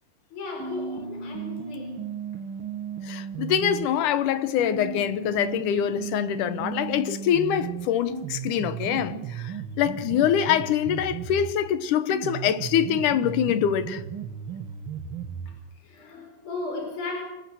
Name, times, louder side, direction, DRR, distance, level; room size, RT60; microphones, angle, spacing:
voice 1, 0.3-2.1 15.5-17.2, left 3 dB, 35° left, 5.2 m, -36 dB
sound 1, 0.6-3.9 4.6-11.6 12.1-15.6, right 7 dB, 50° right, 1.7 m, -35 dB
voice 2, 3.0-14.0, left 9 dB, 70° left, 2.3 m, -24 dB
27.0 x 19.5 x 6.3 m
omnidirectional pair, 4.1 m